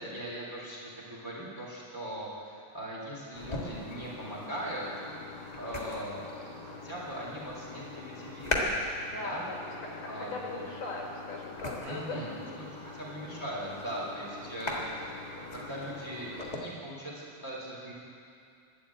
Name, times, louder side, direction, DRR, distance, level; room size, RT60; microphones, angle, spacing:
voice 1, 0.0-5.0 5.5-8.8 9.1-9.4 10.1-10.6 11.8-12.3 12.8-17.9, right 1 dB, 5° right, -5 dB, 3.0 m, -40 dB
sound 1, 3.3-16.6, left 2 dB, 40° left, 0.6 m, -39 dB
voice 2, 9.0-12.6, left 3 dB, 70° left, -2 dB, 3.3 m, -40 dB
12.5 x 11.5 x 8.6 m, 2.5 s
omnidirectional pair, 3.9 m